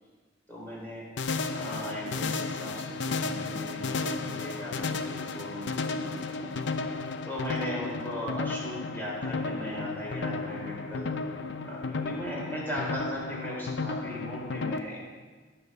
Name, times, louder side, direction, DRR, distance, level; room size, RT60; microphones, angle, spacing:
voice 1, 0.5-1.0 1.5-6.5 7.2-11.1 11.6-15.0, equal, 10° left, -5 dB, 3.8 m, -38 dB
sound 1, 1.2-14.8, left 4 dB, 65° left, 0.6 m, -33 dB
17.0 x 5.8 x 5.5 m, 1.4 s
head